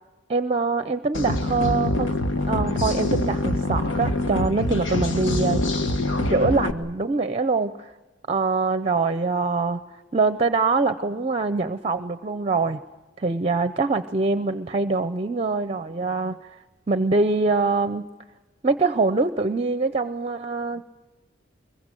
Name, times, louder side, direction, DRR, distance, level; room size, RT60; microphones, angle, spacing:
voice 1, 0.3-2.1 2.5-5.6 6.3-7.9 8.3-12.8 13.2-16.6 16.9-18.1 18.6-20.9, right 3 dB, 35° right, 11 dB, 0.7 m, -24 dB
sound 1, 1.1-6.7, left 1 dB, 70° left, 1.5 m, -24 dB
24.5 x 22.5 x 7.6 m, 1.1 s
head